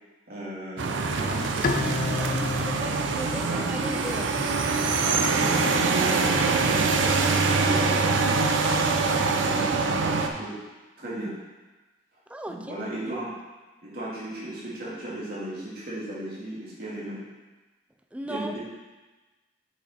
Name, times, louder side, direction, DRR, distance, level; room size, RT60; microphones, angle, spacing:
voice 1, 0.3-2.5 3.3-3.7 5.0-8.3 9.0-10.6 11.0-11.3 12.5-13.3 13.8-17.2 18.2-18.6, right 1 dB, 55° right, -7 dB, 2.3 m, -36 dB
sound 1, 0.8-10.3, right 4 dB, 85° right, 0.6 m, -24 dB
Bowed string instrument, 1.6-4.9, left 3 dB, 50° left, 0.4 m, -32 dB
voice 2, 1.6-4.3 12.3-12.8 13.1-13.2 18.1-18.6, right 1 dB, 5° right, 4 dB, 0.4 m, -37 dB
6.9 x 5.2 x 4.3 m, 1.2 s
head